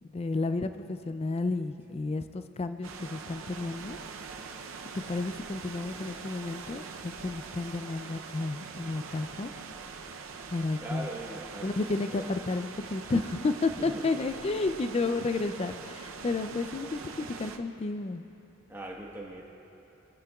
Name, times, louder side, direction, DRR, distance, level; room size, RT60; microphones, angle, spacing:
voice 1, 0.1-4.0 5.1-9.5 10.5-11.1 11.6-18.2, left 3 dB, 30° left, 10 dB, 0.3 m, -32 dB
sound 1, 2.8-17.6, right 5 dB, 70° right, 0.6 m, -43 dB
voice 2, 10.8-12.3 13.8-14.4 18.7-19.4, right 1 dB, 10° right, -2 dB, 1.2 m, -41 dB
23.0 x 9.7 x 2.3 m, 2.9 s
head